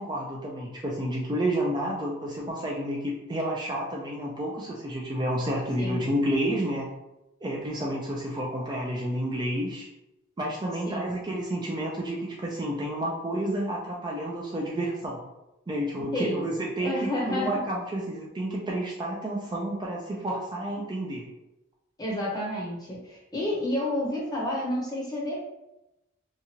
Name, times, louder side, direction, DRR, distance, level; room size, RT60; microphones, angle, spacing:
voice 1, 0.0-6.9 7.4-9.9 10.4-15.2 15.7-21.3, right 1 dB, 20° right, -3 dB, 0.4 m, -30 dB
voice 2, 16.1-16.4 16.8-17.6 22.0-25.4, left 1 dB, 20° left, -3 dB, 0.7 m, -30 dB
2.8 x 2.4 x 2.8 m, 0.93 s
head